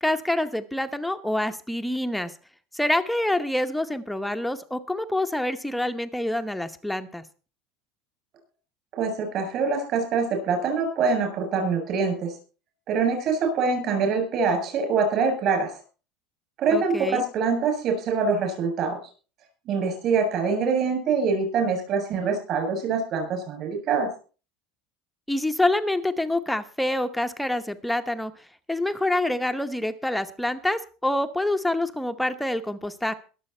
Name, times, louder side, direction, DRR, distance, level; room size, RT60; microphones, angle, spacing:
voice 1, 0.0-2.3 2.7-7.2 16.7-17.2 25.3-28.3 28.7-33.1, left 1 dB, ahead, 7 dB, 0.9 m, -26 dB
voice 2, 8.9-12.3 12.9-15.7 16.6-19.0 19.7-24.1, right 5 dB, 45° right, 5 dB, 7.2 m, -24 dB
22.0 x 7.6 x 4.4 m, 0.36 s
cardioid pair, 150°, 0 cm